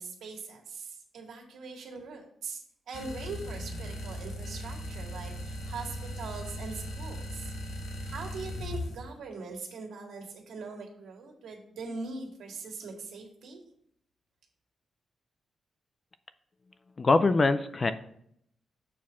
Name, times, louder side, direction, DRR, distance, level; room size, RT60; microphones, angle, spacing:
voice 1, 0.0-7.5 8.0-13.6, right 4 dB, 75° right, 1 dB, 1.9 m, -41 dB
sound 1, 2.9-9.0, left 1 dB, 75° left, 1.1 m, -38 dB
voice 2, 17.0-17.9, left 3 dB, 25° left, 12 dB, 0.4 m, -23 dB
7.2 x 4.6 x 5.6 m, 0.69 s
wide cardioid pair, 175°, 0 cm